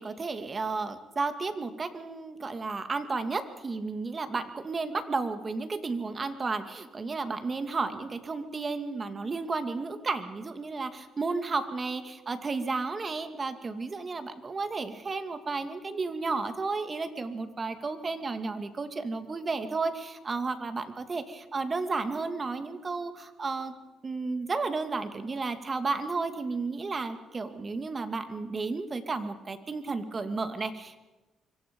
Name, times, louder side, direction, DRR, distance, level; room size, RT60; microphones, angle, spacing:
voice 1, 0.0-23.7 24.0-31.0, right 4 dB, 35° right, 9 dB, 2.4 m, -33 dB
25.5 x 23.5 x 5.5 m, 1.1 s
cardioid pair, 90°, 0 cm